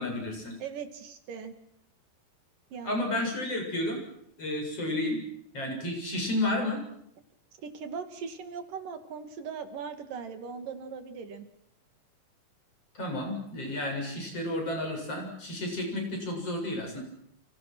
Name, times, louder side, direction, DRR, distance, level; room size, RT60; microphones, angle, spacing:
voice 1, 0.0-0.6 2.8-4.0 4.4-5.2 5.5-6.8 12.9-17.0, left 1 dB, 45° left, 2 dB, 8.4 m, -31 dB
voice 2, 0.6-1.5 2.7-3.1 7.6-11.5, right 6 dB, 85° right, 8 dB, 4.1 m, -39 dB
30.0 x 29.0 x 6.3 m, 0.75 s
omnidirectional pair, 3.8 m